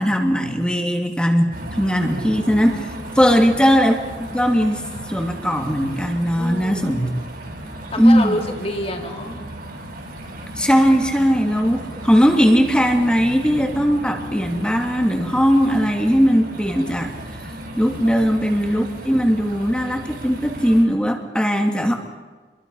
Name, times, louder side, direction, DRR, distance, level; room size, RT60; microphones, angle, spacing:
voice 1, 0.0-2.8 3.1-4.0 4.3-7.1 8.0-8.4 10.6-17.1 17.8-21.9, equal, 5° left, 3 dB, 2.5 m, -18 dB
sound 1, 1.5-20.8, right 1 dB, 60° right, 6.1 m, -35 dB
voice 2, 3.2-3.6 6.4-6.9 7.9-9.4 18.2-18.3, left 1 dB, 35° left, 2 dB, 3.2 m, -28 dB
28.5 x 23.0 x 5.6 m, 1.4 s
head